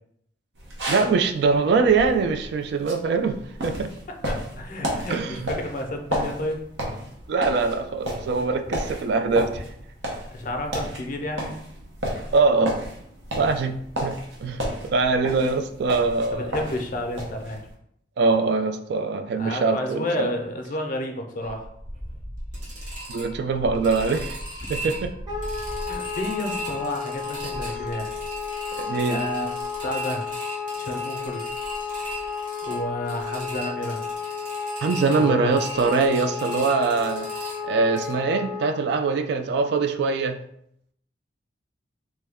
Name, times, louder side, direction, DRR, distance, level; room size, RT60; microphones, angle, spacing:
sound 1, 0.6-17.7, equal, 85° right, 0.8 m, -33 dB
voice 1, 0.9-3.9 5.1-5.5 7.3-9.7 12.3-12.8 13.4-16.5 18.2-20.3 23.1-24.4 24.7-25.1 27.7-27.8 28.8-29.2 34.8-37.3 37.6-40.4, right 4 dB, 65° right, 8 dB, 0.3 m, -23 dB
voice 2, 4.3-6.6 8.7-8.8 10.3-11.5 13.4-13.5 16.3-17.6 19.3-21.7 25.8-28.1 29.1-29.5 29.8-30.3 30.8-31.4 32.6-34.0 35.2-35.6, left 1 dB, 50° left, 4 dB, 0.5 m, -31 dB
sound 2, 21.4-38.1, right 1 dB, 50° right, 0.9 m, -37 dB
Wind instrument woodwind instrument, 25.3-38.7, left 6 dB, 25° right, 0.7 m, -33 dB
3.1 x 2.2 x 3.4 m, 0.70 s
head